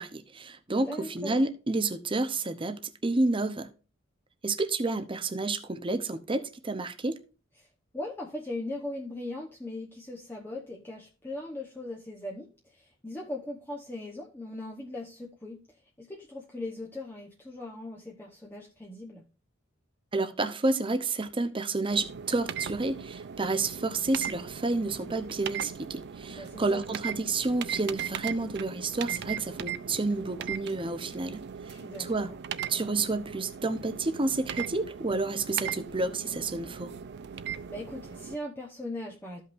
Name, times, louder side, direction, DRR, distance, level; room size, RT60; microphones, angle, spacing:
voice 1, 0.0-3.7 4.4-7.2 20.1-31.4 32.0-32.3 32.7-36.9, right 3 dB, 25° right, 0.7 m, -30 dB
voice 2, 0.9-1.4 7.9-15.6 16.0-19.2 26.3-26.8 31.6-32.4 37.7-39.4, left 1 dB, 10° left, 1.0 m, -39 dB
sound 1, 21.9-38.4, right 8 dB, 55° right, 0.4 m, -39 dB
14.0 x 5.5 x 2.6 m
head